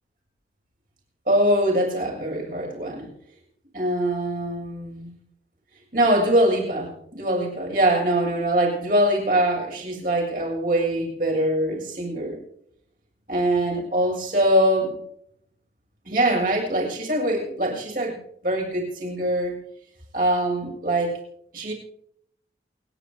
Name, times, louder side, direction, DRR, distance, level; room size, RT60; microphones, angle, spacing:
voice 1, 1.3-3.1 3.7-5.1 5.9-12.4 13.3-15.0 16.1-18.2 18.4-19.6 20.1-21.2 21.5-21.7, right 1 dB, 50° right, -2 dB, 7.0 m, -23 dB
28.5 x 10.5 x 3.4 m, 0.69 s
head